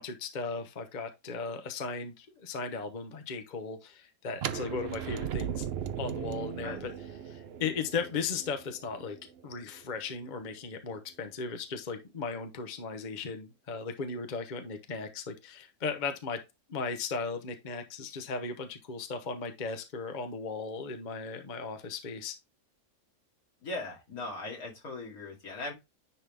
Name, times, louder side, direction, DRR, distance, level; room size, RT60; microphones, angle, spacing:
voice 1, 0.0-5.7 6.0-6.9 7.2-9.2 9.4-16.4 16.7-22.4, left 4 dB, 35° left, 1.0 m, -36 dB
sound 1, 4.4-10.2, right 9 dB, 60° right, 0.7 m, -38 dB
voice 2, 23.6-25.7, left 2 dB, 75° left, 3.0 m, -39 dB
10.0 x 3.8 x 3.4 m
omnidirectional pair, 1.5 m